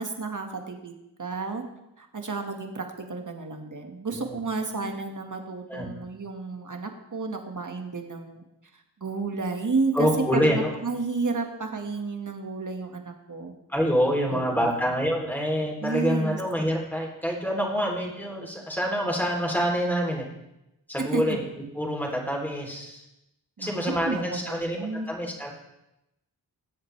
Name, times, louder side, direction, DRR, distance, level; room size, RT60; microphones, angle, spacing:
voice 1, 0.0-1.6 2.0-8.4 8.7-13.5 14.3-14.9 15.8-16.4 21.1-21.2 23.6-25.1, right 4 dB, 45° right, 4 dB, 1.8 m, -32 dB
voice 2, 9.9-10.7 13.7-20.2 20.9-21.4 21.7-23.0 23.6-25.5, equal, 5° left, -2 dB, 3.3 m, -26 dB
21.0 x 7.9 x 3.4 m, 0.89 s
cardioid pair, 65°, 43 cm